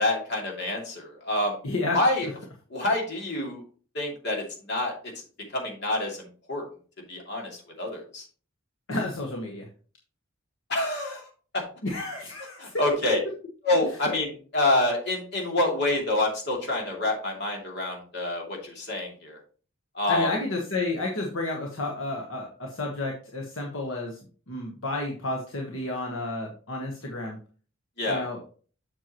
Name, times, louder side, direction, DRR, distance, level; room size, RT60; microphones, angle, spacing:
voice 1, 0.0-1.6 1.9-2.3 2.7-3.6 3.9-4.9 5.5-6.6 7.1-8.2 10.7-11.3 11.5-11.6 12.6-13.2 13.6-19.4 19.9-20.3 28.0-28.3, left 2 dB, 50° left, 0 dB, 2.6 m, -27 dB
voice 2, 1.6-2.3 8.9-9.7 11.8-12.7 14.0-14.1 20.1-24.2 24.5-27.4 28.1-28.4, left 2 dB, 70° left, 0 dB, 1.3 m, -31 dB
7.7 x 6.8 x 3.0 m, 0.40 s
head